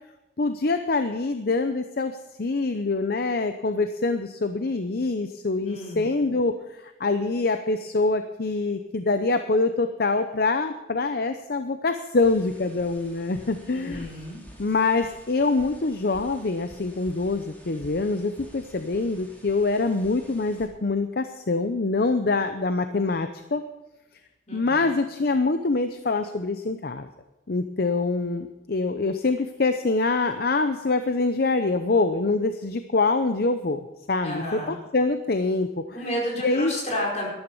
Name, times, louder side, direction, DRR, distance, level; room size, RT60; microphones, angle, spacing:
voice 1, 0.4-6.5 7.0-14.1 14.6-23.6 24.5-27.1 27.5-33.8 34.1-35.7 36.4-36.7, left 3 dB, 60° left, 9 dB, 0.7 m, -25 dB
voice 2, 5.6-6.1 13.7-14.4 24.5-24.8 34.2-34.8 35.9-37.3, equal, 40° left, -2 dB, 4.9 m, -31 dB
sound 1, 12.2-20.7, equal, 10° left, 2.9 m, -49 dB
13.0 x 12.5 x 5.5 m, 1.0 s
head